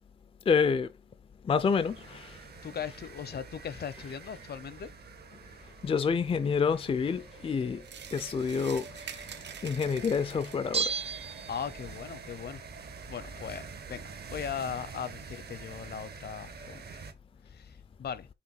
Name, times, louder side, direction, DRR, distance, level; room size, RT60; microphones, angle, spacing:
voice 1, 0.5-0.9 1.4-2.4 5.8-7.8 8.1-9.3 9.6-10.9, left 5 dB, 30° left, 0.4 m, -28 dB
sound 1, 1.7-17.1, right 5 dB, 65° right, 1.2 m, -47 dB
voice 2, 2.6-4.9 11.5-12.6 13.1-13.6 13.9-17.0 17.5-18.3, left 7 dB, 65° left, 0.8 m, -38 dB
sound 2, 7.8-10.8, right 8 dB, 80° right, 0.9 m, -46 dB
Bell, 10.7-12.1 12.4-12.5, right 5 dB, 35° right, 0.6 m, -33 dB
5.8 x 4.5 x 4.5 m
wide cardioid pair, 175°, 18 cm